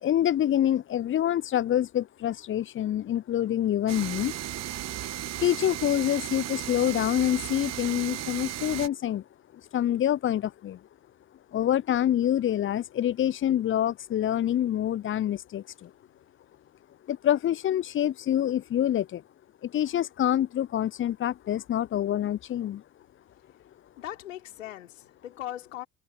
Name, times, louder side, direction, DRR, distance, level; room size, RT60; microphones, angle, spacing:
voice 1, 0.0-4.3 5.4-9.2 9.7-10.8 11.5-15.9 17.1-19.2 19.6-22.8, left 11 dB, 30° left, 0.7 m, -26 dB
sound 1, 3.9-8.9, right 13 dB, 45° right, 1.3 m, -35 dB
voice 2, 24.0-25.9, left 13 dB, 75° left, 4.2 m, -39 dB
figure-of-eight pair, 55°, 39 cm